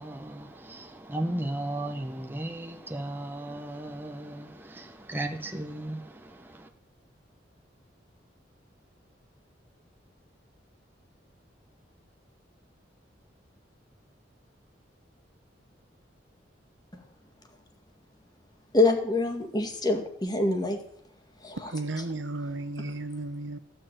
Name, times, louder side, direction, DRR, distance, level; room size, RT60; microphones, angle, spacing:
voice 1, 0.0-6.4, right 1 dB, 10° right, 3 dB, 1.0 m, -35 dB
voice 2, 18.7-20.8 21.4-21.6, left 2 dB, 20° left, 5 dB, 1.9 m, -25 dB
voice 3, 21.6-23.6, right 2 dB, 85° right, 10 dB, 1.2 m, -34 dB
15.0 x 6.6 x 9.0 m, 0.71 s
head